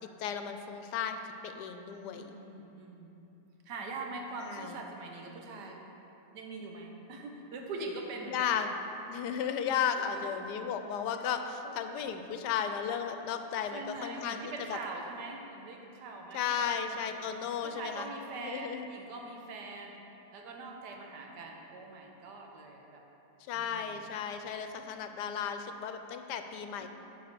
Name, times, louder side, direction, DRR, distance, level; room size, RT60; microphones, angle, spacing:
voice 1, 0.2-2.4 4.4-4.7 8.3-8.7 9.1-14.4 14.7-14.8 16.3-18.1 18.4-18.9 23.5-26.9, left 8 dB, 80° left, 7 dB, 1.1 m, -34 dB
voice 2, 2.1-3.1 3.6-5.8 6.3-8.6 10.0-10.4 11.6-11.8 13.7-17.3 17.6-20.0 20.3-23.0 23.5-24.0 26.8-26.9, right 3 dB, 80° right, 1 dB, 1.5 m, -43 dB
9.6 x 4.1 x 6.7 m, 3.0 s
omnidirectional pair, 1.8 m